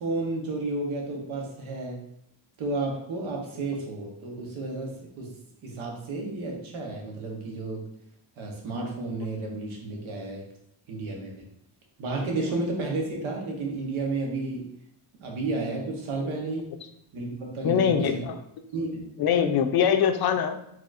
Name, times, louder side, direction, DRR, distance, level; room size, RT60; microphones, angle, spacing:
voice 1, 0.0-2.0 2.6-5.3 5.6-7.9 8.4-10.5 10.9-11.4 12.0-14.7 15.2-16.7 17.1-18.2 18.7-19.1, right 2 dB, 85° right, 0 dB, 1.1 m, -32 dB
voice 2, 17.6-18.4 19.2-20.7, left 7 dB, 55° left, 8 dB, 0.5 m, -23 dB
4.2 x 3.0 x 2.4 m, 0.75 s
cardioid pair, 115°, 47 cm